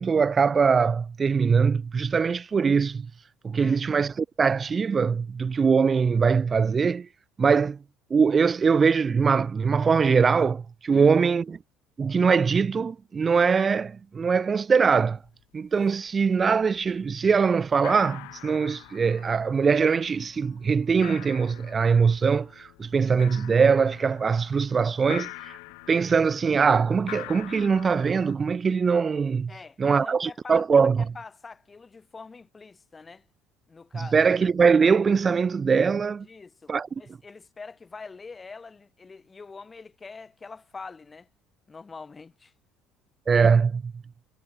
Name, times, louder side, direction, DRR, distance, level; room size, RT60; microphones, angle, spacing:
voice 1, 0.0-3.1 3.4-7.1 7.4-7.8 8.1-11.6 12.0-15.2 15.5-25.6 25.9-29.5 29.8-31.0 33.9-36.3 36.7-36.9 43.3-43.9, right 5 dB, 30° right, 0.7 m, -22 dB
voice 2, 3.6-3.9 10.9-11.2 29.5-33.2 33.7-34.2 36.2-41.3 41.7-42.5, left 4 dB, 25° left, 4.7 m, -44 dB
sound 1, 15.1-15.3 15.5-16.1 16.4-17.0 17.3-17.4 17.7-28.4, left 39 dB, 85° left, 4.4 m, -44 dB
supercardioid pair, 90°, 0 cm